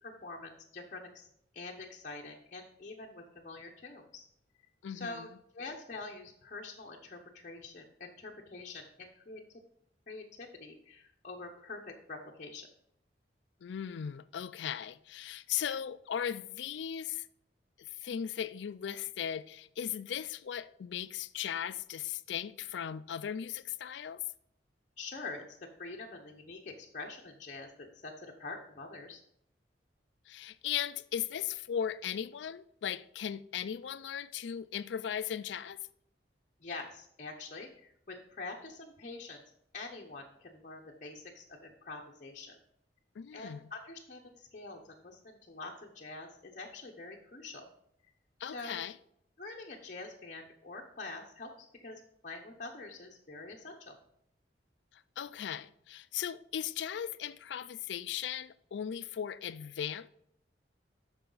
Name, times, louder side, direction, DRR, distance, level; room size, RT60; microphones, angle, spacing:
voice 1, 0.0-1.3 1.5-4.3 4.9-5.3 5.5-9.4 10.1-11.8 12.1-12.7 25.0-29.2 36.6-39.4 39.7-42.6 43.3-47.7 48.4-48.8 49.4-51.5 51.8-54.0, left 3 dB, 40° left, 0.8 m, -45 dB
voice 2, 4.8-5.3 13.6-17.3 17.8-24.2 30.3-35.8 43.2-43.7 48.4-49.0 54.9-60.1, left 9 dB, 70° left, 0.4 m, -37 dB
8.7 x 6.2 x 3.9 m
head